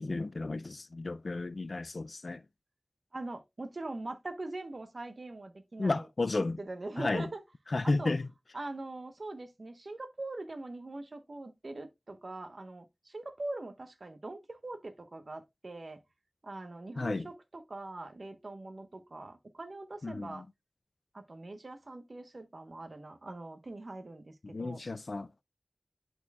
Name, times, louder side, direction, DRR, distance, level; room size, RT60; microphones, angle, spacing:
voice 1, 0.0-2.4 5.8-6.6 7.0-7.3 7.7-8.3 17.0-17.3 20.0-20.5 24.4-25.4, left 3 dB, 70° left, 0.4 m, -33 dB
voice 2, 3.1-6.1 6.6-7.4 7.8-8.1 8.5-16.0 16.4-20.4 21.1-24.8, right 2 dB, 65° right, 1.0 m, -42 dB
11.0 x 4.4 x 2.3 m
wide cardioid pair, 65°, 0 cm